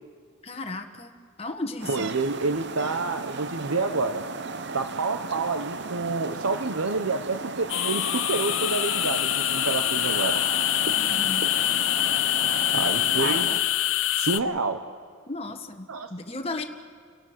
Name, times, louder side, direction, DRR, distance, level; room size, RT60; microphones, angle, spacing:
voice 1, 0.4-1.1 1.4-2.1 10.9-11.5 15.3-16.6, left 2 dB, 30° left, 4 dB, 1.4 m, -35 dB
sound 1, 1.8-13.6, right 4 dB, 55° right, 0.8 m, -35 dB
voice 2, 1.9-4.2 4.7-10.4 12.7-13.5 14.1-14.8 15.9-16.1, right 3 dB, 85° right, 7 dB, 0.9 m, -28 dB
sound 2, 7.7-14.4, left 14 dB, 65° left, 0.5 m, -25 dB
29.5 x 12.0 x 7.8 m, 2.1 s
head